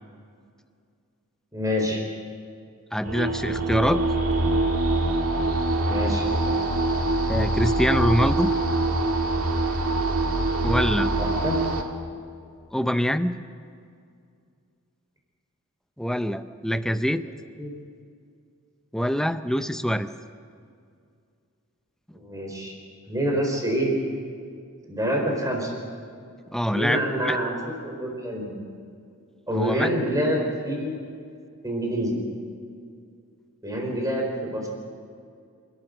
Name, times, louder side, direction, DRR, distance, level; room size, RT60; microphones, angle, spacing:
voice 1, 1.5-2.0 5.8-6.2 11.1-11.6 17.6-17.7 22.1-22.7 23.1-24.0 24.8-25.7 26.7-28.6 29.5-31.0 31.6-32.2 33.6-34.7, equal, 15° right, 0 dB, 4.4 m, -27 dB
voice 2, 2.9-4.0 7.3-8.5 10.6-11.1 12.7-13.4 16.0-17.3 18.9-20.1 26.5-27.4 29.5-29.9, equal, ahead, 11 dB, 0.6 m, -24 dB
sound 1, 3.0-11.8, right 2 dB, 70° right, 1.9 m, -24 dB
26.5 x 12.5 x 7.8 m, 2.3 s
head